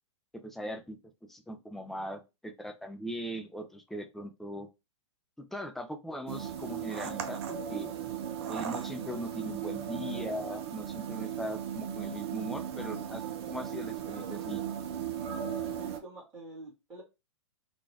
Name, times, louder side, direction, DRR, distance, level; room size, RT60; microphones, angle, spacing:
voice 1, 0.3-1.0 1.3-4.7 5.4-7.9 8.5-13.2 13.5-14.6, equal, ahead, 5 dB, 0.4 m, -40 dB
sound 1, 6.3-16.0, right 9 dB, 55° right, 0.7 m, -37 dB
voice 2, 15.8-17.0, right 2 dB, 20° right, -4 dB, 2.0 m, -47 dB
3.9 x 2.5 x 3.3 m, 0.25 s
hypercardioid pair, 130°, 16 cm